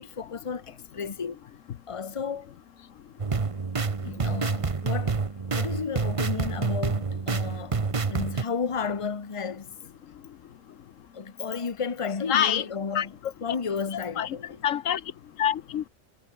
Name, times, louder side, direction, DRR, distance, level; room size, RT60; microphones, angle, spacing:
voice 1, 0.0-1.4 1.9-2.5 4.0-5.2 5.5-7.8 8.1-9.7 11.1-13.1 13.4-14.6, left 5 dB, 25° left, 1.1 m, -33 dB
sound 1, 3.2-8.4, right 4 dB, 30° right, 0.9 m, -28 dB
voice 2, 12.3-12.6 12.9-13.1 13.9-14.4 14.6-15.0 15.4-15.9, left 10 dB, 80° left, 1.2 m, -26 dB
omnidirectional pair, 1.3 m